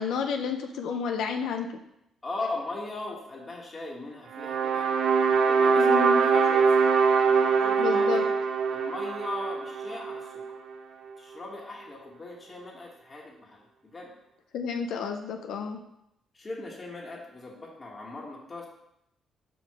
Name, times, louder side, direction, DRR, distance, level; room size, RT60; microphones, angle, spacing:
voice 1, 0.0-1.8 5.8-6.2 7.8-8.3 14.5-15.8, left 6 dB, 80° left, 5 dB, 0.5 m, -30 dB
voice 2, 2.2-4.9 5.3-7.1 7.4-8.3 8.7-10.3 11.2-14.1 16.3-18.7, left 2 dB, 30° left, -3 dB, 1.5 m, -39 dB
sound 1, 4.3-10.5, right 5 dB, 70° right, 0.6 m, -23 dB
5.4 x 4.6 x 4.9 m, 0.82 s
cardioid pair, 90°, 0 cm